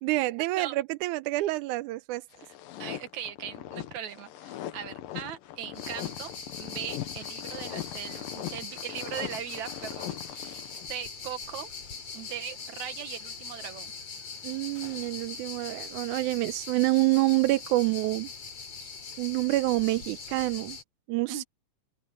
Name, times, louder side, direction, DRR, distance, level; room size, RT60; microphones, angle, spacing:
voice 1, 0.0-2.2 14.4-18.3 18.8-18.9 19.2-20.8 21.1-21.4, right 19 dB, 80° right, 1.9 m, -27 dB
sound 1, 2.3-10.9, left 13 dB, 85° left, 2.8 m, -40 dB
voice 2, 2.8-10.6 10.9-11.7 12.1-13.9 21.3-21.4, right 10 dB, 60° right, 2.7 m, -39 dB
sound 2, 5.7-20.8, left 5 dB, 50° left, 4.4 m, -41 dB
open air
omnidirectional pair, 3.9 m